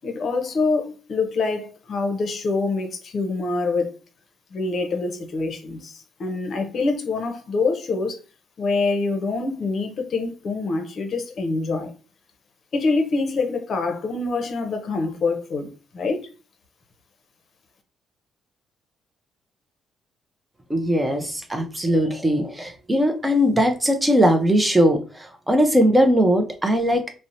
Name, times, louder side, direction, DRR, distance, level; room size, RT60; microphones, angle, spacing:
voice 1, 0.0-3.9 4.5-8.2 8.6-11.9 12.7-16.3, left 3 dB, 55° left, 0.6 m, -25 dB
voice 2, 20.7-27.1, equal, 15° right, 0.5 m, -20 dB
2.7 x 2.0 x 2.5 m
cardioid pair, 90°, 0 cm